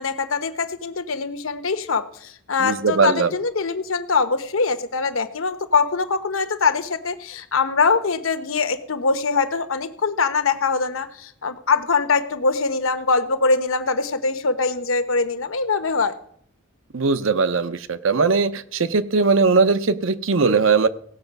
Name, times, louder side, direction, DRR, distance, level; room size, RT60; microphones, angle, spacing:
voice 1, 0.0-16.2, left 4 dB, 80° left, 9 dB, 1.0 m, -23 dB
voice 2, 2.6-3.3 16.9-20.9, right 4 dB, 70° right, 13 dB, 0.7 m, -19 dB
17.5 x 7.0 x 5.3 m, 0.63 s
head